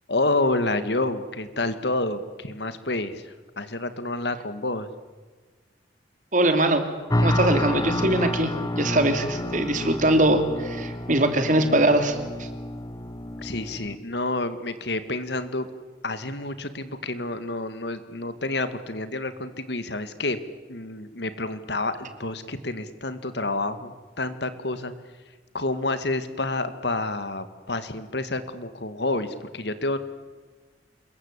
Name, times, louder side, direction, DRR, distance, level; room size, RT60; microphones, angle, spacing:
voice 1, 0.1-4.9 13.4-15.7 16.0-20.4 20.7-24.9 25.5-30.0, left 2 dB, 65° left, 11 dB, 2.0 m, -29 dB
voice 2, 6.3-6.8 7.2-12.5, right 1 dB, 45° right, 7 dB, 3.1 m, -22 dB
sound 1, 7.1-14.0, left 1 dB, 20° left, 0.9 m, -29 dB
26.5 x 22.5 x 8.3 m, 1.4 s
head